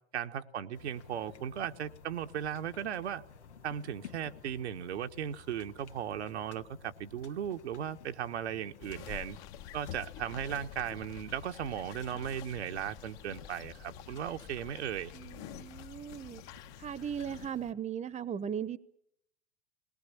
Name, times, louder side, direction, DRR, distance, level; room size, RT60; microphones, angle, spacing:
voice 1, 0.1-3.2 3.6-9.4 9.7-15.1, right 9 dB, 75° right, 6 dB, 1.3 m, -37 dB
sound 1, 0.7-17.7, left 5 dB, 80° left, 1.8 m, -54 dB
sound 2, 8.8-17.5, left 11 dB, 50° left, 1.6 m, -48 dB
voice 2, 15.1-16.4 16.8-18.8, right 8 dB, 20° right, 19 dB, 1.0 m, -38 dB
20.5 x 20.0 x 7.2 m, 0.73 s
hypercardioid pair, 95°, 34 cm